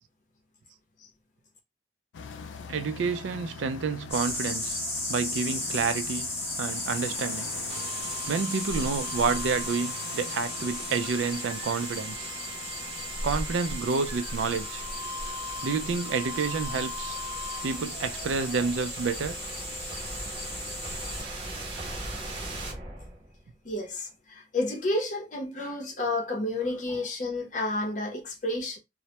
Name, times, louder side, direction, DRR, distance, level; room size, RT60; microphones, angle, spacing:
sound 1, 2.1-17.4, left 5 dB, 85° left, 0.3 m, -45 dB
voice 1, 2.7-4.8 5.1-6.3 6.6-7.5 8.3-12.3 13.2-14.8 15.6-17.2 17.6-19.3, right 5 dB, 90° right, 0.4 m, -29 dB
sound 2, 4.1-21.2, left 1 dB, 15° left, 0.8 m, -36 dB
sound 3, 7.7-23.5, equal, 30° right, 0.6 m, -39 dB
voice 2, 23.6-28.8, left 2 dB, 40° left, 0.6 m, -30 dB
2.1 x 2.1 x 2.8 m
head